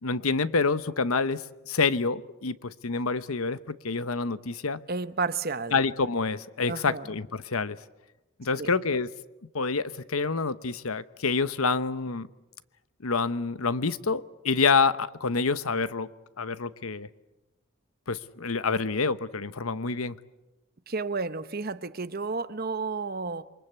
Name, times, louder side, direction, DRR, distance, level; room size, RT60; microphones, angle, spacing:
voice 1, 0.0-4.8 5.7-7.8 8.4-9.1 9.5-12.3 13.0-16.1 16.4-17.1 18.1-20.2, left 4 dB, 85° left, 1.0 m, -27 dB
voice 2, 4.9-5.8 6.7-7.1 8.6-8.7 20.9-23.4, right 4 dB, 45° right, 1.0 m, -31 dB
28.0 x 24.0 x 8.2 m
head